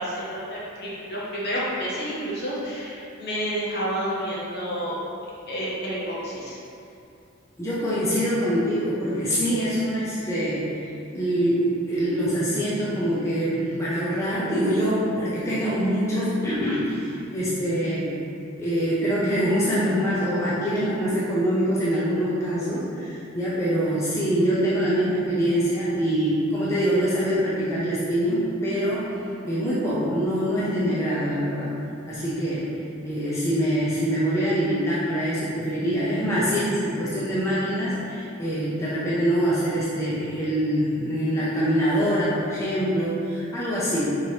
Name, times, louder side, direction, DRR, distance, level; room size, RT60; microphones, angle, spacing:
voice 1, 0.0-5.0 5.5-6.6, equal, 55° left, -7 dB, 1.0 m, -30 dB
voice 2, 7.6-10.7 11.1-18.1 18.6-29.1 29.4-31.7 32.1-32.7 33.0-44.1, equal, 15° left, -9 dB, 0.5 m, -24 dB
4.6 x 3.0 x 2.8 m, 2.5 s
head